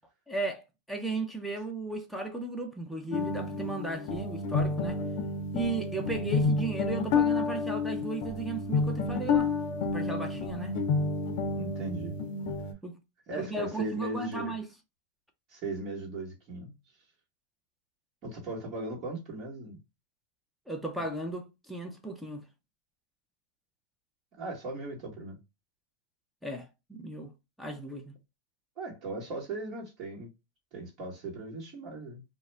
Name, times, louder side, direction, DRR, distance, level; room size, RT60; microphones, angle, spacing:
voice 1, 0.3-0.6 0.9-5.0 5.5-9.5 9.8-10.7 12.8-13.0 13.4-14.7 20.7-22.4 26.4-27.3 27.6-28.1, right 2 dB, ahead, 0.5 m, -35 dB
sound 1, 3.1-12.7, left 4 dB, 60° left, 0.5 m, -30 dB
voice 2, 5.9-6.3 11.5-12.2 13.3-14.5 15.5-16.7 18.2-19.8 21.0-21.1 24.4-25.4 28.8-30.3 30.7-32.2, right 2 dB, 45° right, 1.1 m, -38 dB
2.3 x 2.1 x 3.2 m
hypercardioid pair, 110°, 0 cm